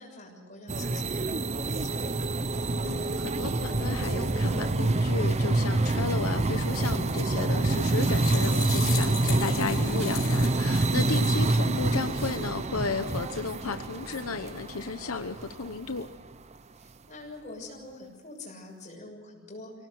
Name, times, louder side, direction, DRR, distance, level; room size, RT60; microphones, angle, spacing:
voice 1, 0.0-2.2 11.0-11.2 16.8-19.7, left 2 dB, 35° left, 0 dB, 6.7 m, -45 dB
sound 1, 0.7-16.0, right 2 dB, 30° right, 0.7 m, -27 dB
voice 2, 2.8-16.1, left 4 dB, 90° left, 8 dB, 1.0 m, -33 dB
sound 2, 7.7-11.4 11.9-12.4, left 9 dB, 65° left, 5.9 m, -39 dB
24.0 x 18.0 x 7.9 m, 1.3 s
head